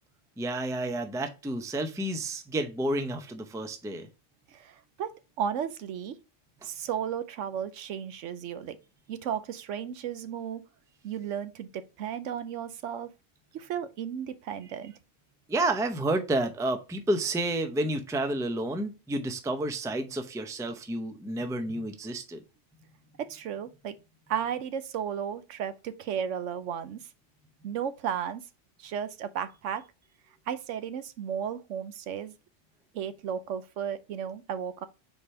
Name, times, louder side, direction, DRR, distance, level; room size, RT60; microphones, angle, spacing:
voice 1, 0.4-4.1 15.5-22.4, right 1 dB, 5° right, 0.5 m, -30 dB
voice 2, 4.5-5.1 5.4-6.2 6.6-8.8 9.1-10.6 11.0-13.1 13.5-15.0 23.2-24.0 24.3-27.0 27.6-28.4 28.8-29.8 30.5-32.3 32.9-34.9, right 8 dB, 80° right, 1.0 m, -34 dB
5.0 x 4.4 x 4.3 m
omnidirectional pair, 1.3 m